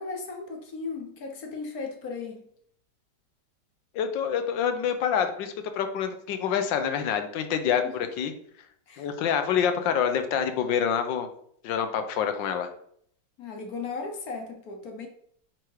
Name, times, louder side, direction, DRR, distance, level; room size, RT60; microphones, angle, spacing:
voice 1, 0.0-2.4 7.8-8.0 8.9-9.1 13.4-15.1, left 4 dB, 60° left, 3 dB, 1.3 m, -36 dB
voice 2, 3.9-8.3 9.0-11.3 11.6-12.7, left 8 dB, 85° left, 8 dB, 1.4 m, -27 dB
4.9 x 4.6 x 4.6 m, 0.65 s
omnidirectional pair, 1.9 m